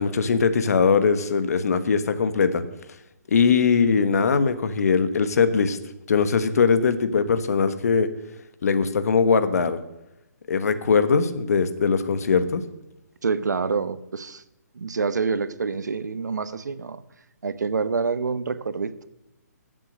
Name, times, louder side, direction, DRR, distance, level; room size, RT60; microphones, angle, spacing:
voice 1, 0.0-2.6 3.3-5.8 6.1-8.1 8.6-9.8 10.5-12.6, left 5 dB, 65° left, 11 dB, 1.3 m, -21 dB
voice 2, 13.2-14.4 14.7-17.0 17.4-19.0, right 5 dB, 80° right, 13 dB, 0.9 m, -27 dB
13.5 x 7.7 x 6.6 m, 0.92 s
hypercardioid pair, 150°, 9 cm